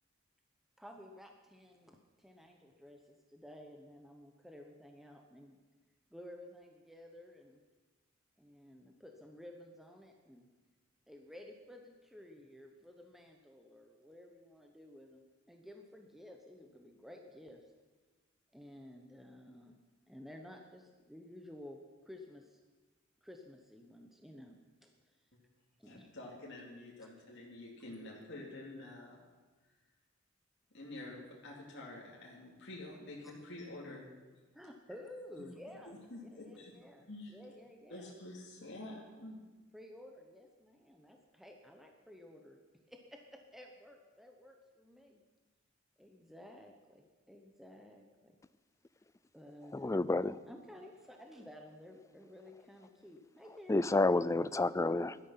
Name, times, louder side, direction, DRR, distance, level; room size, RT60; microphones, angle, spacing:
voice 1, 0.8-5.6 6.1-7.6 8.4-10.5 11.1-15.2 15.5-17.6 18.5-19.8 20.1-22.6 23.2-24.9 25.8-26.1 34.5-38.1 39.7-42.6 42.9-45.2 46.0-48.4 49.3-53.8, left 1 dB, ahead, 1.0 m, -54 dB
voice 2, 25.8-29.2 30.7-34.0 35.9-36.7 37.1-37.4 37.9-39.4, left 2 dB, 60° left, 2.9 m, -48 dB
voice 3, 49.7-50.4 53.7-55.2, left 2 dB, 15° left, 0.4 m, -30 dB
16.5 x 12.5 x 5.8 m
head